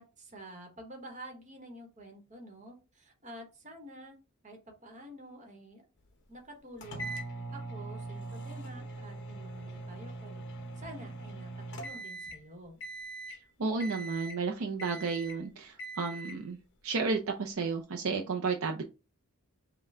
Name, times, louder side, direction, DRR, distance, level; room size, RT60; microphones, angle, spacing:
voice 1, 0.0-4.2 4.4-5.8 6.3-7.1 7.5-10.5 10.7-12.8, right 1 dB, 35° right, 3 dB, 1.1 m, -49 dB
sound 1, 6.8-12.5 12.8-13.4 13.8-14.5 14.8-15.4 15.8-16.4, right 2 dB, 55° left, 0.8 m, -41 dB
voice 2, 13.6-16.6 16.8-18.8, right 4 dB, 60° right, 2 dB, 0.5 m, -32 dB
5.4 x 2.3 x 3.5 m, 0.30 s
head